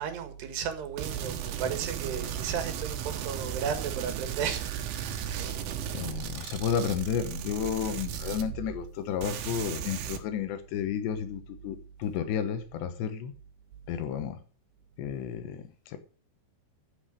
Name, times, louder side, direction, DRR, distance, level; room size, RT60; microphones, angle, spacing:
voice 1, 0.0-4.6 5.3-5.6, right 7 dB, 70° right, 3.7 m, -34 dB
sound 1, 1.0-8.9 9.2-10.2, right 9 dB, 85° right, 3.9 m, -35 dB
voice 2, 5.6-13.3 13.9-14.4 15.0-16.0, left 8 dB, 75° left, 3.3 m, -32 dB
14.0 x 7.7 x 6.5 m
omnidirectional pair, 5.3 m